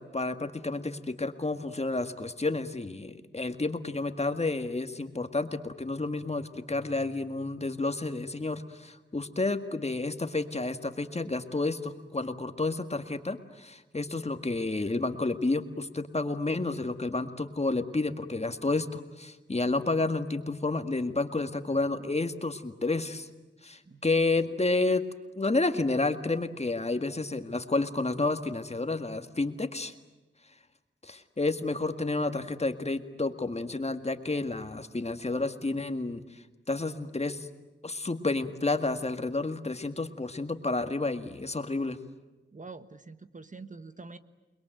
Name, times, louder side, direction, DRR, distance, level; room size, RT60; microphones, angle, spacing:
voice 1, 0.0-23.3 23.6-25.0 25.4-29.9 31.0-36.2 36.7-37.5 37.8-42.0, left 3 dB, 30° left, 8 dB, 1.9 m, -30 dB
voice 2, 42.5-44.2, right 3 dB, 40° right, 11 dB, 1.3 m, -45 dB
29.0 x 21.5 x 9.2 m, 1.1 s
wide cardioid pair, 65°, 20 cm